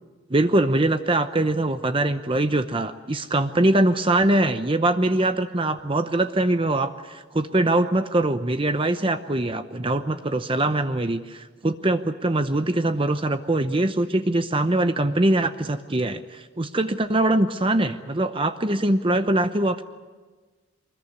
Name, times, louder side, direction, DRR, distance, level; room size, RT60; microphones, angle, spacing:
voice 1, 0.3-19.8, right 2 dB, 25° right, 9 dB, 0.8 m, -22 dB
24.5 x 21.0 x 9.7 m, 1.3 s
head